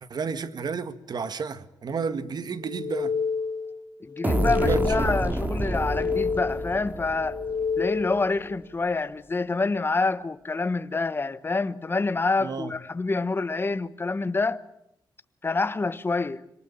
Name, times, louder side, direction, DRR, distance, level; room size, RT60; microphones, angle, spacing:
voice 1, 0.1-3.2 4.6-5.2 12.4-12.7, right 5 dB, 60° right, 1.7 m, -32 dB
sound 1, 2.6-3.8 4.1-5.3 5.6-6.8 7.2-8.3, left 5 dB, 60° left, 3.5 m, -29 dB
voice 2, 4.0-7.4 7.8-14.6 15.4-16.4, left 3 dB, 30° left, 1.3 m, -27 dB
sound 2, 4.2-7.9, right 1 dB, 20° right, 3.6 m, -28 dB
26.0 x 23.5 x 8.8 m
wide cardioid pair, 110°, 8 cm